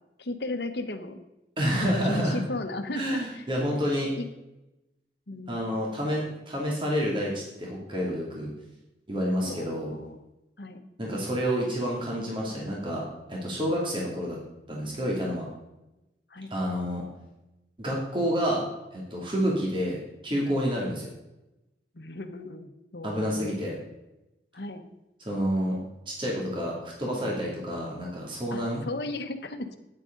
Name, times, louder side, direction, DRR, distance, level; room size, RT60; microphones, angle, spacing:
voice 1, 0.2-1.2 1.7-3.8 4.2-4.3 5.3-5.7 9.4-10.2 10.6-10.8 16.3-16.5 21.9-23.5 24.5-24.8 28.5-29.8, left 2 dB, 70° left, 7 dB, 1.2 m, -36 dB
voice 2, 1.6-2.4 2.9-4.1 5.5-8.5 9.1-9.9 11.0-14.4 14.7-15.5 16.5-17.0 17.8-18.6 18.9-21.1 23.0-23.7 25.2-25.8 26.1-28.8, equal, 30° right, -3 dB, 2.8 m, -29 dB
12.5 x 9.7 x 3.9 m, 0.94 s
head